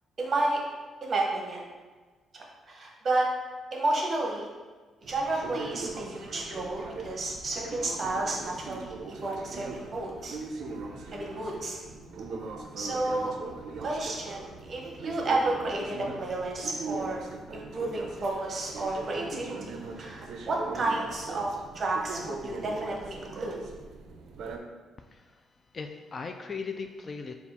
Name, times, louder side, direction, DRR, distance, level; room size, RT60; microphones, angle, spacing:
voice 1, 0.2-0.6 1.0-1.6 2.3-3.3 3.7-4.5 5.0-10.4 11.1-11.8 12.8-13.3 13.8-17.3 17.5-23.6, right 2 dB, 40° right, -1 dB, 0.9 m, -31 dB
sound 1, 5.0-24.6, right 3 dB, 70° right, 0.4 m, -40 dB
voice 2, 25.1-25.4 25.7-27.3, left 4 dB, 40° left, 5 dB, 0.3 m, -38 dB
4.2 x 2.3 x 4.1 m, 1.4 s
cardioid pair, 90°, 0 cm